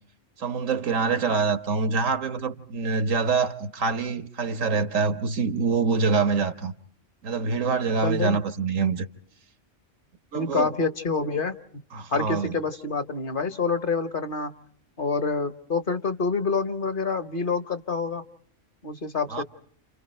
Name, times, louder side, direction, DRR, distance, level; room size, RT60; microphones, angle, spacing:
voice 1, 0.4-6.7 7.2-9.1 10.3-10.7 11.9-12.6 19.3-19.4, right 4 dB, 90° right, 1.8 m, -25 dB
voice 2, 8.0-8.4 10.3-11.5 12.1-14.5 15.0-18.2 18.8-19.4, left 4 dB, 45° left, 1.3 m, -27 dB
29.5 x 29.5 x 4.4 m
omnidirectional pair, 1.3 m